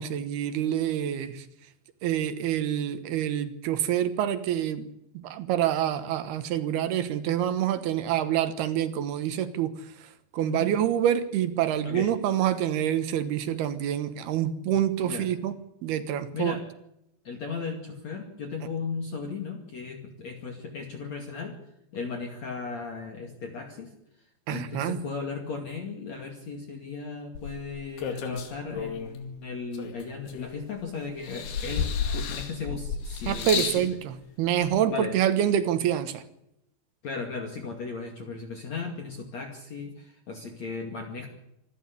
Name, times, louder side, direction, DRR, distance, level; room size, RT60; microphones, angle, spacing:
voice 1, 0.0-1.5 2.0-4.9 5.1-9.7 10.3-15.5 15.8-16.6 24.5-25.0 33.3-36.2, right 10 dB, 70° right, 11 dB, 3.1 m, -27 dB
voice 2, 10.4-10.7 11.8-12.1 15.0-15.3 16.3-16.6 17.2-21.5 21.9-23.9 24.5-33.9 34.9-35.1 37.0-41.3, left 5 dB, 45° left, 4 dB, 3.0 m, -36 dB
sound 1, 27.3-29.2 29.7-30.8 31.2-33.9 34.8-34.9, left 6 dB, 70° left, 4.2 m, -32 dB
26.0 x 12.5 x 8.4 m, 0.81 s
omnidirectional pair, 4.9 m